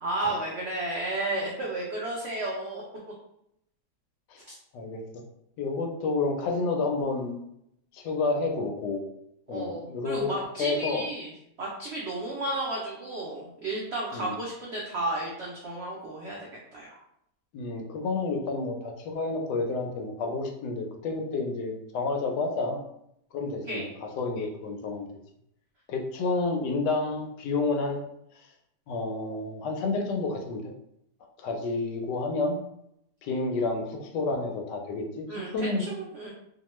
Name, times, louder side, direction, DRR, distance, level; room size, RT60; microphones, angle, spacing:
voice 1, 0.0-2.8 4.5-4.6 9.5-11.3 11.6-16.4 16.7-16.9 23.7-23.9 35.3-36.3, right 2 dB, 85° right, -3 dB, 0.5 m, -33 dB
voice 2, 5.6-7.4 7.9-9.0 9.5-11.0 14.1-14.4 17.5-22.8 23.3-25.1 25.9-28.0 28.9-30.6 31.4-32.6 33.2-35.8, left 3 dB, 90° left, 3 dB, 1.2 m, -30 dB
2.9 x 2.2 x 3.0 m, 0.78 s
omnidirectional pair, 1.8 m